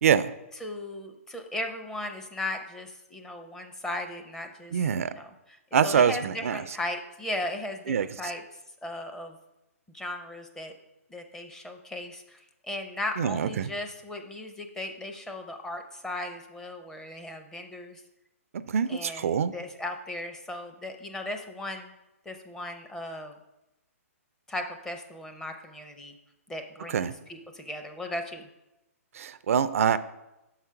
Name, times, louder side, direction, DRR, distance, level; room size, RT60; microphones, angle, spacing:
voice 1, 0.0-0.3 4.7-5.1 5.7-6.8 7.9-8.1 13.2-13.7 18.5-19.5 26.9-27.1 29.1-30.0, right 7 dB, 70° right, 14 dB, 0.4 m, -25 dB
voice 2, 0.6-5.6 5.8-8.4 8.8-9.4 9.9-10.7 11.1-18.0 18.9-21.9 22.3-23.4 24.5-26.1 26.5-28.5, left 1 dB, 5° left, 4 dB, 0.5 m, -37 dB
5.8 x 4.8 x 5.6 m, 0.94 s
hypercardioid pair, 145°, 8 cm